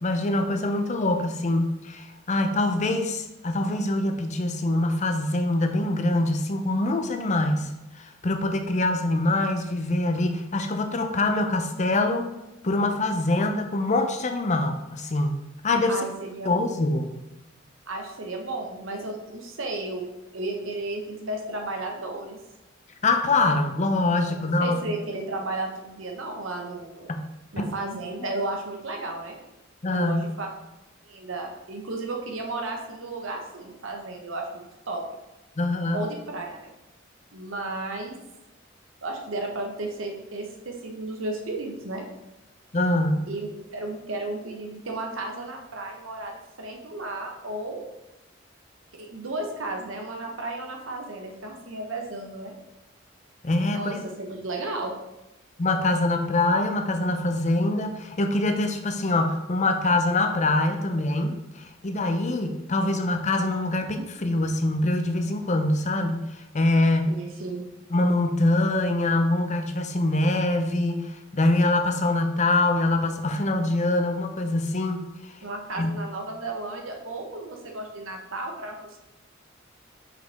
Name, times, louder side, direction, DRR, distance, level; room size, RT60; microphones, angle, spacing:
voice 1, 0.0-12.3 12.6-15.3 15.6-16.0 16.4-17.1 23.0-24.9 27.1-27.3 27.6-27.7 29.8-30.3 35.6-36.0 42.7-43.3 53.4-54.0 55.6-66.2 66.5-67.2 67.9-75.0 75.8-75.9, left 2 dB, 35° left, 6 dB, 0.6 m, -24 dB
voice 2, 15.9-16.5 17.9-22.4 24.3-27.1 27.5-29.4 29.9-30.5 31.0-35.0 35.9-36.7 37.3-38.2 39.0-42.0 43.2-47.8 48.9-52.5 53.7-54.9 67.1-67.6 75.4-79.0, right 2 dB, 85° right, 2 dB, 1.2 m, -34 dB
5.7 x 5.1 x 3.5 m, 0.95 s
head